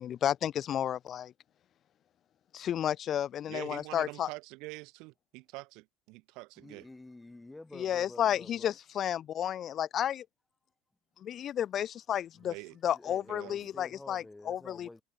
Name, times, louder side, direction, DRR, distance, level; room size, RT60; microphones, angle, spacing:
voice 1, 0.0-1.3 2.5-4.3 7.8-10.3 11.2-12.5 12.8-14.9, left 10 dB, 40° left, 0.3 m, -32 dB
voice 2, 3.5-6.8 12.5-12.8 13.3-13.7, right 25 dB, 70° right, 0.7 m, -45 dB
voice 3, 6.6-8.7 12.3-12.6 12.9-15.0, left 2 dB, 10° left, 2.1 m, -50 dB
supercardioid pair, 125°, 0 cm